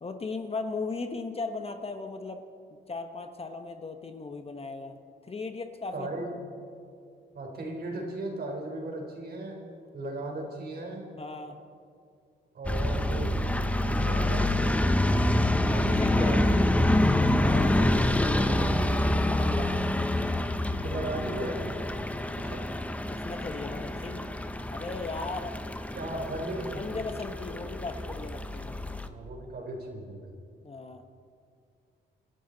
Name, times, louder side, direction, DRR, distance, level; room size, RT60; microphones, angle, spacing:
voice 1, 0.0-2.4 2.9-5.0 5.3-6.1 11.2-11.6 15.6-16.3 17.4-19.9 23.1-24.3 24.7-25.5 26.8-28.9 30.6-31.0, left 3 dB, 30° left, 6 dB, 1.2 m, -37 dB
voice 2, 5.9-6.3 7.3-9.6 9.9-11.1 12.5-13.3 13.8-15.0 16.0-16.6 20.8-21.7 22.4-22.6 25.9-27.0 29.1-30.3, right 2 dB, 50° right, 1 dB, 4.1 m, -36 dB
sound 1, 12.6-29.1, left 1 dB, 5° left, 0.9 m, -27 dB
28.0 x 12.0 x 4.1 m, 2.3 s
cardioid pair, 90°, 20 cm